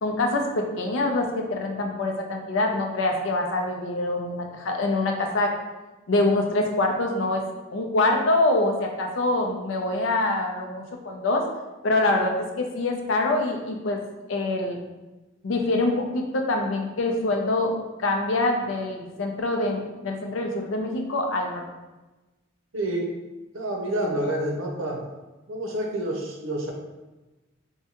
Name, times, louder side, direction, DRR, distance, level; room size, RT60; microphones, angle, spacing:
voice 1, 0.0-5.5 6.1-7.4 7.7-11.4 11.8-14.0 14.3-14.8 15.4-21.6, left 2 dB, 75° left, 3 dB, 0.5 m, -25 dB
voice 2, 22.7-23.1 23.5-25.1 25.5-26.7, right 1 dB, 85° right, 1 dB, 0.6 m, -28 dB
4.6 x 2.2 x 2.9 m, 1.1 s
head